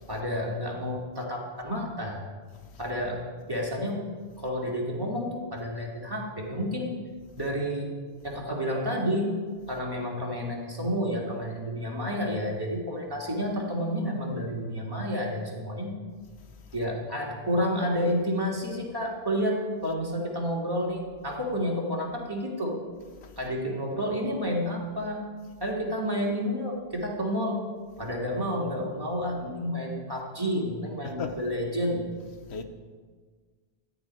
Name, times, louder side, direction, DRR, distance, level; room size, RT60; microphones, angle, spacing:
voice 1, 0.1-2.3 2.8-4.0 4.4-6.9 7.4-7.9 8.2-9.3 9.7-15.9 16.7-22.8 23.4-25.3 25.6-27.6 28.0-32.0, equal, 20° right, 2.2 m, -30 dB
voice 2, 16.4-16.8 23.2-23.4 31.0-31.4 32.4-32.6, left 5 dB, 85° left, 1.2 m, -39 dB
14.0 x 5.4 x 9.2 m
omnidirectional pair, 1.1 m